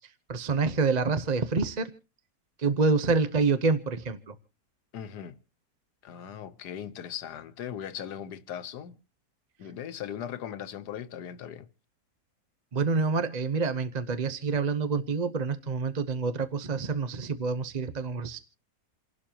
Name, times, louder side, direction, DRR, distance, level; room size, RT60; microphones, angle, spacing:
voice 1, 0.3-1.9 2.6-4.3 12.7-18.4, right 4 dB, 35° right, 0.7 m, -27 dB
voice 2, 4.9-5.4 6.0-9.0 9.6-11.7, left 9 dB, 90° left, 1.5 m, -39 dB
28.5 x 11.5 x 2.9 m
omnidirectional pair, 1.7 m